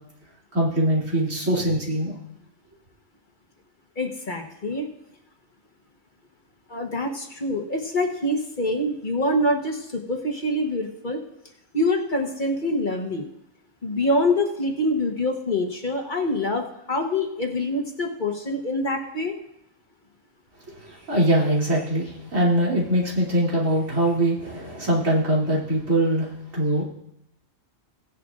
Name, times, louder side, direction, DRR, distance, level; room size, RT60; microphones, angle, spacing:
voice 1, 0.5-2.2 20.7-26.8, right 1 dB, 80° right, -5 dB, 3.3 m, -22 dB
voice 2, 4.0-4.9 6.7-11.2 11.7-13.3 13.8-19.4, left 1 dB, 40° left, 1 dB, 1.3 m, -25 dB
17.5 x 10.0 x 2.5 m, 0.80 s
omnidirectional pair, 1.3 m